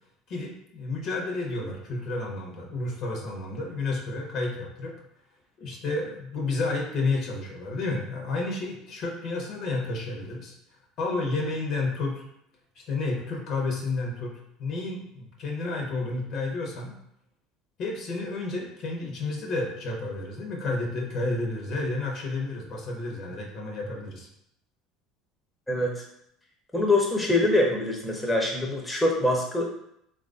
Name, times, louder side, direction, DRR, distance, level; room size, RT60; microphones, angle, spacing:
voice 1, 0.3-5.0 5.6-10.5 11.0-12.2 12.9-16.9 17.8-24.3, left 3 dB, 55° left, -1 dB, 0.8 m, -31 dB
voice 2, 25.7-26.0 26.7-29.7, left 2 dB, 10° left, 0 dB, 0.6 m, -24 dB
3.2 x 2.3 x 2.5 m, 0.75 s
hypercardioid pair, 75°, 0 cm